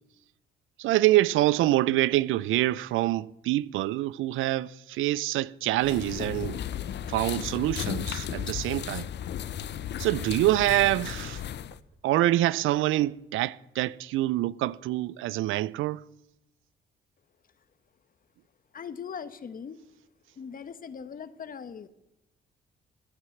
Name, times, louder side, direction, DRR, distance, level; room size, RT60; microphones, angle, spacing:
voice 1, 0.8-6.6 7.1-9.1 10.0-11.4 12.0-16.0, right 16 dB, 85° right, 0.5 m, -26 dB
sound 1, 5.8-11.8, left 10 dB, 60° left, 0.8 m, -35 dB
voice 2, 18.7-19.8 20.4-21.9, left 6 dB, 45° left, 1.1 m, -40 dB
15.5 x 9.8 x 7.8 m
cardioid pair, 90°, 20 cm